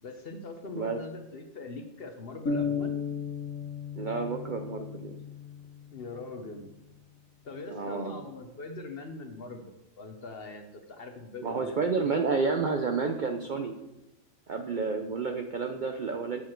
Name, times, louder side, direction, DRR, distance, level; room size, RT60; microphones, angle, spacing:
voice 1, 0.0-2.9 5.9-6.7 7.4-11.9, left 3 dB, 50° left, 6 dB, 1.0 m, -42 dB
sound 1, 2.5-6.2, left 5 dB, 75° left, 1.4 m, -34 dB
voice 2, 4.0-5.2 7.7-8.2 11.4-13.7 14.5-16.4, right 4 dB, 55° right, 5 dB, 0.5 m, -30 dB
8.1 x 7.2 x 4.5 m, 0.91 s
omnidirectional pair, 1.4 m